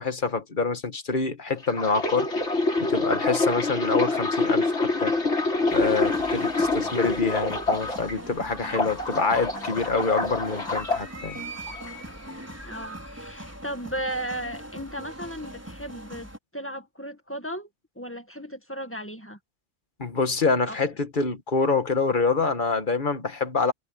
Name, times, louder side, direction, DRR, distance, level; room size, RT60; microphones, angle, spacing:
voice 1, 0.0-2.3 2.8-5.1 5.7-11.4 20.0-23.7, left 4 dB, 45° left, 1.6 m, -26 dB
sound 1, 1.6-8.1 8.5-11.0 11.7-11.9, left 2 dB, 80° left, 3.9 m, -26 dB
sound 2, 5.7-16.4, right 1 dB, 10° right, 5.0 m, -41 dB
voice 2, 12.6-17.7 18.0-19.4 20.7-20.8, right 1 dB, 10° left, 1.9 m, -35 dB
omnidirectional pair, 1.2 m